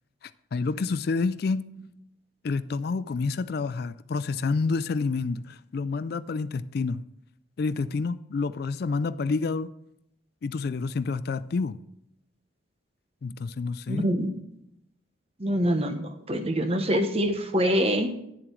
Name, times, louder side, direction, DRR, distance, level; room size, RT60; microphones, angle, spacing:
voice 1, 0.2-1.7 2.4-7.0 7.6-9.7 10.4-11.8 13.2-14.1, left 4 dB, 50° left, 0.3 m, -28 dB
voice 2, 13.9-14.3 15.4-18.1, equal, 30° right, 1.0 m, -25 dB
10.0 x 7.5 x 4.5 m
head